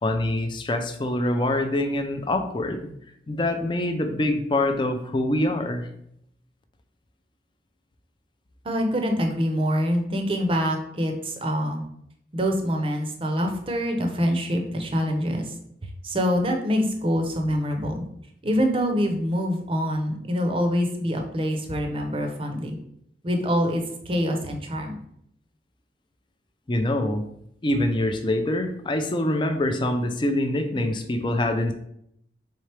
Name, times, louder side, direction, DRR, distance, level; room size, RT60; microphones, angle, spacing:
voice 1, 0.0-2.9 3.3-5.9 26.7-27.2 27.6-31.7, left 1 dB, 25° left, 6 dB, 0.4 m, -25 dB
voice 2, 8.6-11.8 12.3-15.5 15.8-18.0 18.4-22.8 23.2-25.0, equal, 30° right, 3 dB, 0.6 m, -25 dB
4.3 x 3.6 x 3.3 m, 0.72 s
head